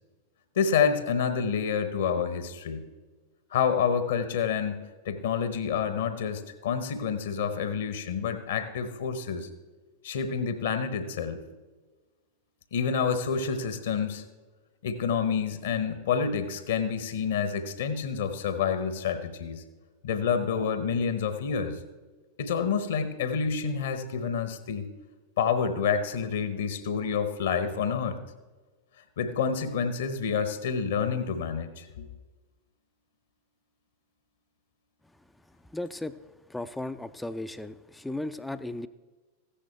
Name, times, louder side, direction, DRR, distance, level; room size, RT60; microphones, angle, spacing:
voice 1, 0.6-2.8 3.5-9.5 10.0-11.4 12.7-14.2 14.8-19.6 20.0-21.8 22.4-24.9 25.4-28.2 29.2-32.1, left 6 dB, 60° left, 11 dB, 0.9 m, -28 dB
voice 2, 35.7-36.2 36.5-38.9, left 2 dB, 5° left, 12 dB, 0.4 m, -35 dB
15.0 x 10.0 x 3.3 m, 1.3 s
figure-of-eight pair, 90°, 0 cm